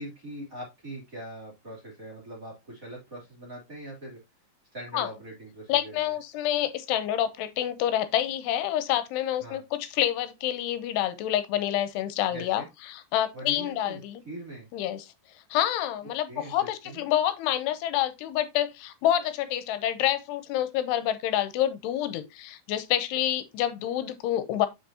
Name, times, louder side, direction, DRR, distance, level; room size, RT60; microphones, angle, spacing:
voice 1, 0.0-4.2 4.7-6.1 9.4-9.6 12.3-12.7 13.3-14.0 14.2-14.7 16.3-17.0, right 1 dB, 20° right, 2.9 m, -42 dB
voice 2, 5.7-14.2 14.7-15.1 15.5-24.7, left 12 dB, 90° left, 2.8 m, -28 dB
7.7 x 6.1 x 2.8 m
omnidirectional pair, 4.8 m